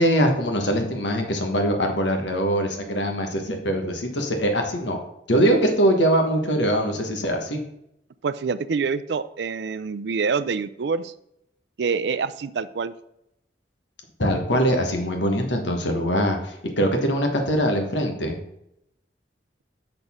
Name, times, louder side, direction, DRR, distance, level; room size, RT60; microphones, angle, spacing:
voice 1, 0.0-5.0 5.3-7.6 14.2-18.4, equal, 85° left, 4 dB, 1.3 m, -22 dB
voice 2, 8.2-11.1 11.8-12.9, right 5 dB, 70° right, 15 dB, 0.4 m, -26 dB
6.7 x 6.1 x 3.6 m, 0.78 s
head